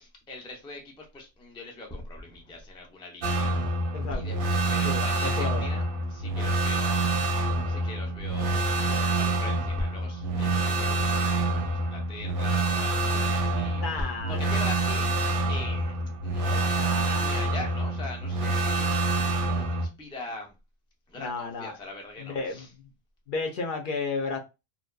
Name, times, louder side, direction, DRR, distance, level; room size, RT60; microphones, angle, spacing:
voice 1, 0.0-3.6 4.1-5.8 6.1-13.9 14.3-15.1 15.5-16.0 16.2-20.5 21.1-22.7, left 2 dB, 10° left, 0.3 m, -41 dB
sound 1, 3.2-19.9, right 2 dB, 65° right, 0.7 m, -27 dB
voice 2, 3.9-4.4 4.8-5.7 13.8-14.8 16.8-17.3 21.1-21.8 22.2-22.9 23.3-24.4, left 4 dB, 60° left, 0.6 m, -33 dB
2.7 x 2.1 x 2.2 m
omnidirectional pair, 1.1 m